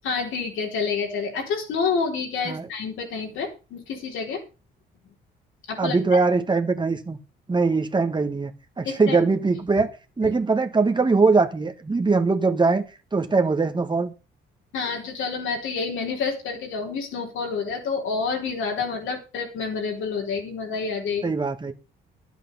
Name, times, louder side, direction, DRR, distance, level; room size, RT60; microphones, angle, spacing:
voice 1, 0.0-4.4 5.7-6.2 8.8-9.3 10.2-10.3 14.7-21.4, left 5 dB, 80° left, 4.2 m, -28 dB
voice 2, 5.8-7.2 7.5-8.5 8.8-9.9 10.2-12.9 13.1-14.1 21.2-21.7, right 4 dB, 25° right, 1.4 m, -21 dB
11.0 x 8.4 x 5.5 m
cardioid pair, 90°, 20 cm